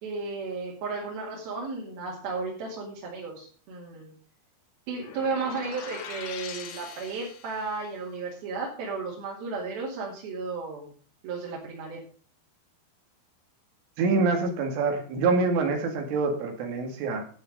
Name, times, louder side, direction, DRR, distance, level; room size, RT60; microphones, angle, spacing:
voice 1, 0.0-4.1 4.9-10.9 11.2-12.0, right 4 dB, 55° right, -4 dB, 4.1 m, -34 dB
sound 1, 5.0-7.8, left 7 dB, 65° left, 2.1 m, -41 dB
voice 2, 14.0-17.2, right 4 dB, 80° right, 4 dB, 4.6 m, -25 dB
12.5 x 7.9 x 5.3 m, 0.42 s
omnidirectional pair, 5.6 m